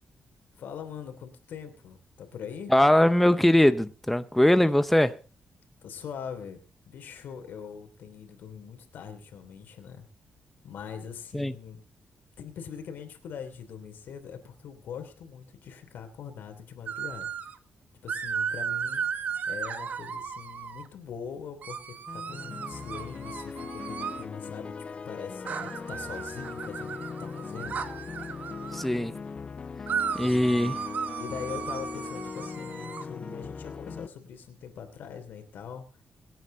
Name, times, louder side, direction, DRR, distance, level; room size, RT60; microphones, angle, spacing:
voice 1, 0.5-2.7 5.8-6.6 6.9-10.1 10.6-11.8 12.4-17.3 18.0-19.0 19.5-24.7 25.0-27.9 31.2-35.8, left 7 dB, 85° left, 3.1 m, -42 dB
voice 2, 2.7-5.2 11.3-11.5 28.7-29.1 30.1-30.8, left 1 dB, 5° left, 0.7 m, -21 dB
sound 1, 16.9-17.6 18.1-20.9 21.6-24.3 25.5-28.9 29.9-33.0, right 7 dB, 60° right, 1.7 m, -35 dB
sound 2, 22.1-34.1, left 5 dB, 35° left, 0.6 m, -39 dB
24.0 x 9.3 x 4.0 m
cardioid pair, 115°, 3 cm